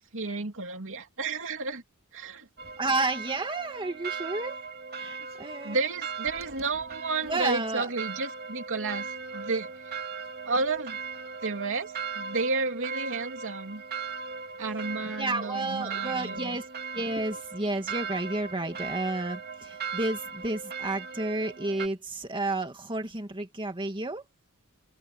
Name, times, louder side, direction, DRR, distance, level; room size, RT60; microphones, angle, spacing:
voice 1, 0.0-1.8 2.1-2.5 5.6-9.7 10.5-11.0 11.4-13.8 14.6-16.6, right 3 dB, 60° right, 3.0 m, -32 dB
sound 1, 2.6-21.9, right 5 dB, 45° right, 3.3 m, -38 dB
voice 2, 2.8-4.6 4.9-5.8 7.2-7.9 15.0-16.7 16.9-24.2, right 2 dB, 25° right, 2.3 m, -31 dB
open air
head